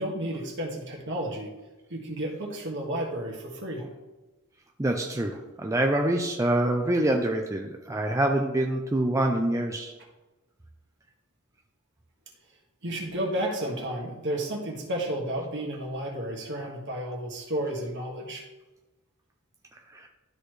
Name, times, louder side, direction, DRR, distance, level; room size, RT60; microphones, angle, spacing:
voice 1, 0.0-1.5 1.9-3.9 12.8-18.4, right 1 dB, 60° right, -1 dB, 1.8 m, -32 dB
voice 2, 4.8-9.9 19.9-20.1, right 1 dB, 15° right, 2 dB, 0.5 m, -26 dB
12.5 x 4.2 x 3.2 m, 1.1 s
head